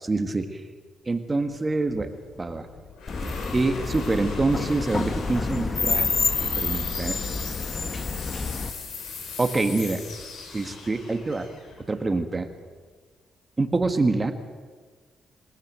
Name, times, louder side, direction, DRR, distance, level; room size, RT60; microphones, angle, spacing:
voice 1, 0.0-0.5 1.1-2.1 2.4-2.6 3.5-6.1 6.6-7.2 9.4-10.0 10.5-11.5 11.9-12.5 13.6-14.3, right 3 dB, 20° right, 7 dB, 1.7 m, -25 dB
sound 1, 1.8-12.7, left 4 dB, 85° left, 4.8 m, -41 dB
sound 2, 3.1-8.7, left 4 dB, 30° left, 1.4 m, -28 dB
27.5 x 19.0 x 7.6 m, 1.4 s
cardioid pair, 140°, 0 cm